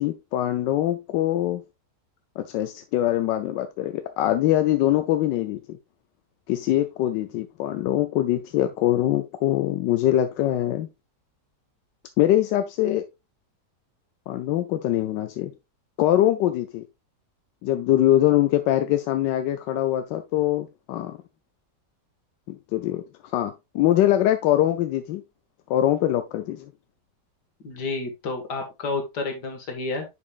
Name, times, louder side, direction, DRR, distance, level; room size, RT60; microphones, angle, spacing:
voice 1, 0.0-1.6 2.4-5.8 6.5-10.9 12.2-13.0 14.3-15.5 16.0-16.8 17.6-21.2 22.5-23.0 23.3-25.2 25.7-26.7, left 13 dB, 90° left, 1.3 m, -23 dB
voice 2, 27.6-30.0, left 3 dB, 70° left, 2.2 m, -30 dB
9.7 x 5.2 x 2.4 m
omnidirectional pair, 1.9 m